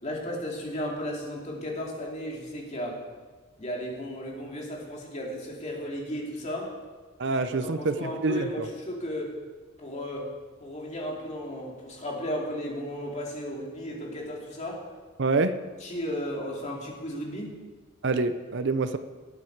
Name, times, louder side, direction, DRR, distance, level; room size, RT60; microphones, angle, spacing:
voice 1, 0.0-3.0 3.6-6.7 7.6-9.4 9.8-10.3 10.6-14.9 15.8-17.5, equal, 35° left, -2 dB, 2.7 m, -34 dB
voice 2, 7.2-8.7 15.2-15.5 18.0-19.0, right 3 dB, 55° right, 11 dB, 0.6 m, -26 dB
19.0 x 9.3 x 4.7 m, 1.4 s
head